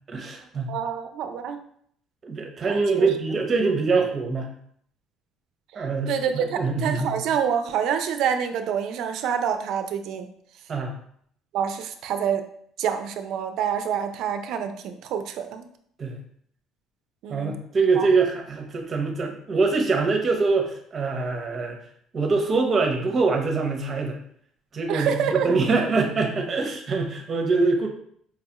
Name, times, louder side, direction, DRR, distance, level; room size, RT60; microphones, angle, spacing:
voice 1, 0.1-0.7 2.2-4.5 5.8-7.3 10.7-10.9 16.0-16.2 17.3-21.8 22.1-24.2 24.7-27.9, right 4 dB, 35° right, 3 dB, 0.7 m, -24 dB
voice 2, 0.7-1.6 2.7-3.1 5.7-10.3 11.5-12.4 12.8-15.7 17.2-17.5 18.0-18.1 24.9-25.6, right 8 dB, 70° right, 8 dB, 0.4 m, -27 dB
4.7 x 2.3 x 2.8 m, 0.65 s
cardioid pair, 120°, 0 cm